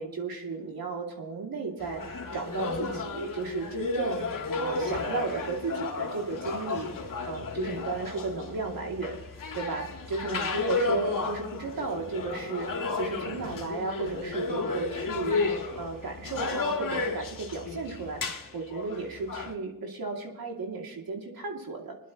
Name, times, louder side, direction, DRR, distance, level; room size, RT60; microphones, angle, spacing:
voice 1, 0.0-4.3 4.6-6.9 7.2-9.2 9.5-22.0, right 4 dB, 65° right, 1 dB, 2.6 m, -34 dB
sound 1, 1.8-19.5, left 3 dB, 55° left, 1.8 m, -33 dB
22.0 x 11.0 x 3.0 m, 0.91 s
cardioid pair, 55°, 39 cm